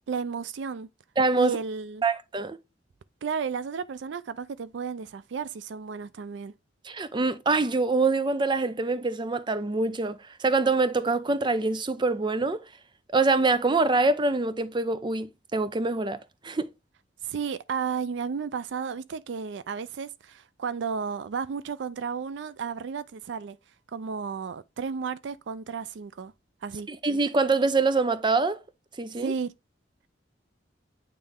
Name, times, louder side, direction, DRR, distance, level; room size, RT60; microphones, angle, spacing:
voice 1, 0.1-0.9 1.4-2.0 3.2-6.5 17.2-23.6 23.9-26.3 26.6-26.9 29.2-29.5, right 6 dB, 75° right, 0.4 m, -33 dB
voice 2, 1.2-1.6 2.0-2.6 6.8-12.6 13.1-16.2 16.4-16.7 26.9-28.6 29.0-29.3, right 3 dB, 25° right, 0.5 m, -25 dB
8.8 x 3.2 x 3.6 m
head